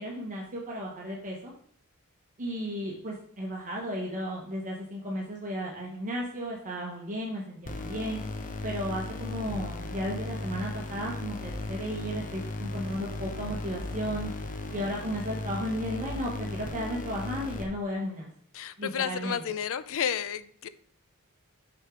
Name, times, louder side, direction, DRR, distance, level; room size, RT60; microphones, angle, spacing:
voice 1, 0.0-1.5 2.4-8.2 8.6-14.3 14.7-18.3 18.8-19.4, equal, 35° right, -2 dB, 1.2 m, -34 dB
sound 1, 7.7-17.6, left 2 dB, 35° left, 0.8 m, -36 dB
voice 2, 18.5-20.7, left 8 dB, 65° left, 15 dB, 0.5 m, -31 dB
6.3 x 6.1 x 3.7 m, 0.63 s
head